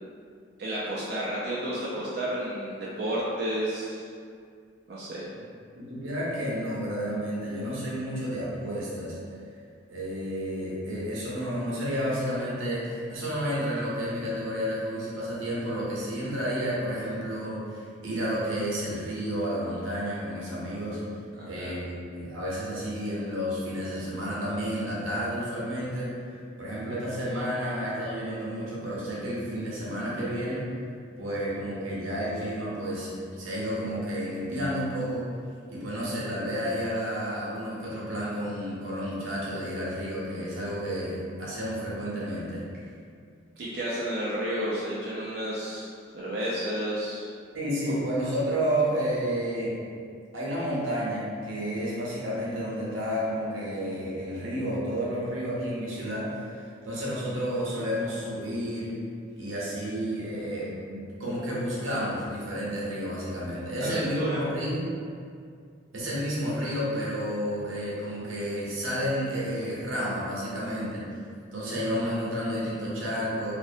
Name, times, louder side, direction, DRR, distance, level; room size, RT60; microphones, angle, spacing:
voice 1, 0.6-4.1 4.9-5.3 21.4-21.7 43.6-45.9 46.1-47.3 63.8-64.4, right 1 dB, 55° right, -7 dB, 0.3 m, -31 dB
voice 2, 5.8-9.2 9.9-21.0 21.5-26.1 26.6-30.7 31.2-35.2 35.7-42.6 47.5-49.7 50.3-58.9 59.3-64.8 65.9-71.0 71.5-73.5, equal, 85° right, -6 dB, 0.7 m, -31 dB
2.5 x 2.0 x 2.5 m, 2.3 s
head